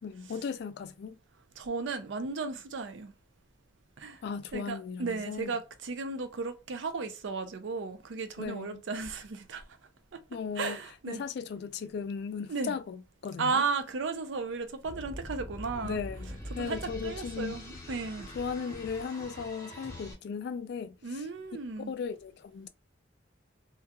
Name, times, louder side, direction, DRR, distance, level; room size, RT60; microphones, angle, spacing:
voice 1, 0.0-1.1 4.2-5.5 8.4-8.8 10.3-10.8 11.1-13.6 15.8-17.6 18.3-21.0 21.9-22.7, left 6 dB, 60° left, 0.3 m, -37 dB
voice 2, 1.6-3.1 4.0-4.2 4.5-9.7 10.1-10.2 10.6-11.2 12.5-12.7 13.4-16.0 16.5-18.3 21.0-21.9, right 4 dB, 75° right, 0.5 m, -35 dB
shark intro w kick, 14.8-20.1, left 1 dB, 15° left, 0.8 m, -43 dB
2.8 x 2.2 x 2.3 m
head